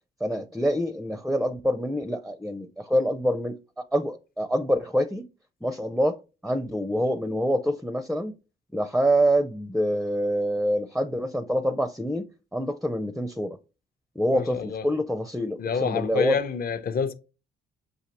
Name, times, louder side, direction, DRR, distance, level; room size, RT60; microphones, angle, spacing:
voice 1, 0.2-3.6 3.9-5.2 5.6-6.2 6.4-8.3 8.7-12.2 12.5-13.6 14.2-16.4, equal, ahead, 0.4 m, -26 dB
voice 2, 14.3-14.8 15.6-17.1, left 6 dB, 50° left, 0.6 m, -28 dB
6.4 x 2.7 x 2.9 m
cardioid pair, 90°, 20 cm